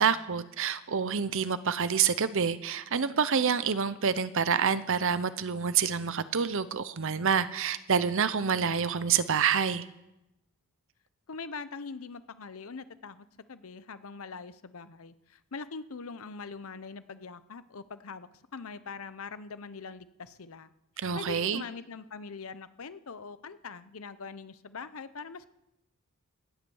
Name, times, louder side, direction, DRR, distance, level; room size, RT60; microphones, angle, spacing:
voice 1, 0.0-9.9 21.0-21.6, right 6 dB, 60° right, 14 dB, 0.7 m, -27 dB
voice 2, 11.3-20.7 21.1-25.5, left 4 dB, 70° left, 14 dB, 0.8 m, -42 dB
17.0 x 8.5 x 7.1 m, 0.90 s
head